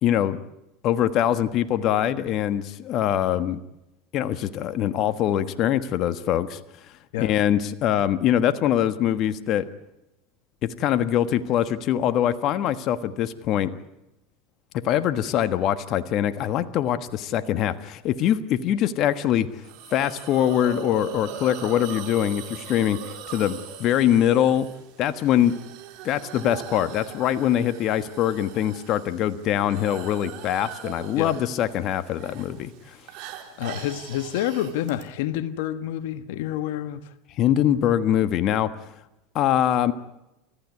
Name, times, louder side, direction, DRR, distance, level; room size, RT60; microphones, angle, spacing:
voice 1, 0.0-0.4 0.8-3.6 4.1-6.6 7.2-9.7 10.6-13.7 14.7-19.5 19.9-24.7 25.0-25.6 26.0-33.0 37.4-38.7 39.3-39.9, left 11 dB, 50° left, 1.3 m, -23 dB
Hiss, 19.6-35.0, right 9 dB, 60° right, 4.3 m, -41 dB
voice 2, 33.6-37.1, left 11 dB, 70° left, 1.3 m, -28 dB
29.5 x 15.0 x 9.6 m
hypercardioid pair, 95°, 0 cm